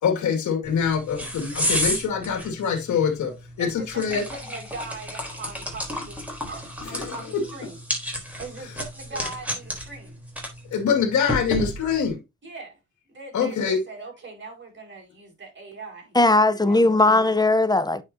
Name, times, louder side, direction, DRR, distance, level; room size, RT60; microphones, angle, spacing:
voice 1, 0.0-4.3 6.8-7.5 10.7-12.2 13.3-13.8, left 6 dB, 70° left, 2.2 m, -24 dB
sound 1, 0.6-12.1, equal, 5° right, 3.6 m, -32 dB
voice 2, 3.6-6.2 6.4-7.8 8.4-10.2 12.4-12.8 13.1-16.2 16.5-17.4, right 3 dB, 40° right, 5.3 m, -40 dB
voice 3, 16.1-18.0, left 2 dB, 15° left, 0.7 m, -18 dB
9.0 x 5.9 x 2.8 m
cardioid pair, 90°, 30 cm